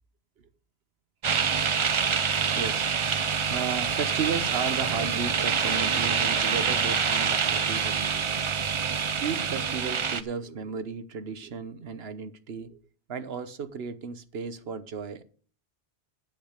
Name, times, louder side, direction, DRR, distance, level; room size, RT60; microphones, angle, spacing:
sound 1, 1.2-10.2, right 6 dB, 40° right, 0.4 m, -26 dB
voice 1, 2.5-2.9 3.5-8.5 9.2-12.8 13.1-15.2, right 5 dB, 65° right, 1.2 m, -34 dB
8.4 x 6.2 x 8.1 m
omnidirectional pair, 1.1 m